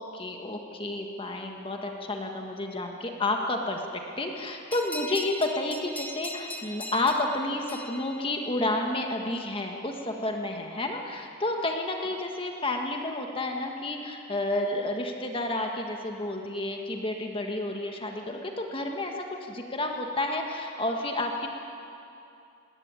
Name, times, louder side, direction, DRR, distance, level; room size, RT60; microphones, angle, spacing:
voice 1, 0.0-21.5, left 2 dB, 25° left, 2 dB, 1.6 m, -31 dB
sound 1, 4.7-8.9, left 1 dB, 10° left, 1.1 m, -40 dB
20.0 x 18.0 x 9.0 m, 2.6 s
head